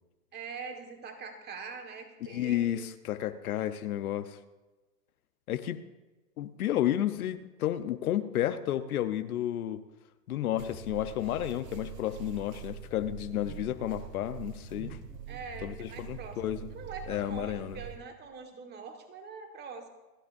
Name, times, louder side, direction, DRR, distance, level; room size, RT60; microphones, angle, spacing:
voice 1, 0.3-2.9 15.3-19.9, right 5 dB, 20° right, 5 dB, 1.7 m, -43 dB
voice 2, 2.2-4.4 5.5-5.8 6.4-9.8 10.3-15.0 15.6-16.7 17.1-17.8, left 12 dB, 60° left, 10 dB, 1.0 m, -32 dB
sound 1, 10.6-18.0, right 7 dB, 55° right, 4.5 m, -44 dB
28.0 x 9.4 x 2.7 m, 1.1 s
hypercardioid pair, 125°, 48 cm